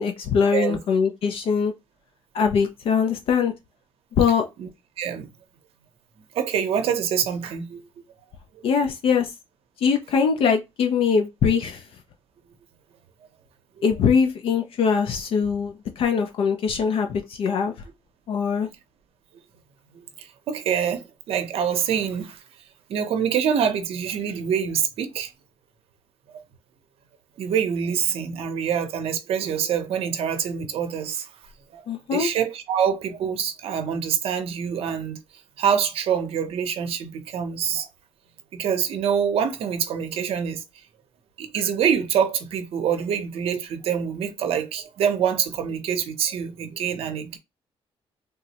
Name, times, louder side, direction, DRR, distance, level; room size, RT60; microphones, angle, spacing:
voice 1, 0.0-1.7 2.3-3.5 4.2-4.5 8.6-9.3 9.8-11.8 13.8-17.7 18.3-18.7 31.9-32.3, left 6 dB, 65° left, 0.5 m, -22 dB
voice 2, 5.0-5.3 6.3-7.8 8.5-8.6 19.9-22.4 22.9-25.3 27.4-31.3 31.7-31.8 32.1-35.2 35.6-37.9 38.5-40.6 41.4-47.4, right 8 dB, 70° right, 0.7 m, -25 dB
3.5 x 2.0 x 2.8 m
cardioid pair, 130°, 10 cm